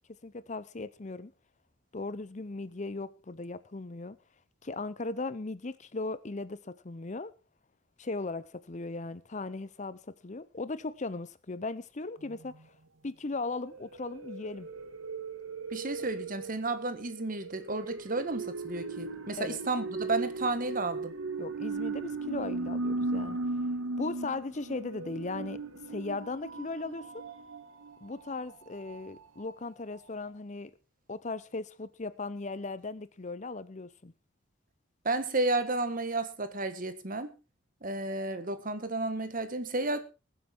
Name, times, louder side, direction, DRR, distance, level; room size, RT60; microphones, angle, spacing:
voice 1, 0.2-1.3 1.9-4.2 4.6-7.3 8.0-12.7 13.0-14.7 19.4-19.6 21.4-23.4 24.0-25.6 25.9-27.2 28.0-30.7 31.1-34.1, left 3 dB, 35° left, 0.7 m, -37 dB
sound 1, 12.2-12.5 13.6-29.5 30.0-30.1 30.2-30.3, right 3 dB, 90° right, 1.8 m, -37 dB
voice 2, 15.7-21.1 35.1-37.3 37.8-40.0, right 2 dB, 45° right, 1.6 m, -32 dB
20.5 x 8.2 x 4.5 m
head